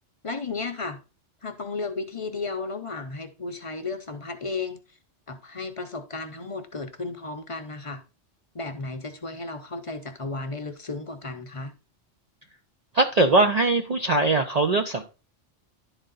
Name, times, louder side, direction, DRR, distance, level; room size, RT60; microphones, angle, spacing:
voice 1, 0.2-1.0 1.4-5.0 5.3-8.0 8.5-11.7, left 3 dB, 35° left, 0.6 m, -34 dB
voice 2, 12.9-15.0, right 2 dB, 50° right, 0.5 m, -21 dB
11.0 x 4.0 x 3.8 m
omnidirectional pair, 1.2 m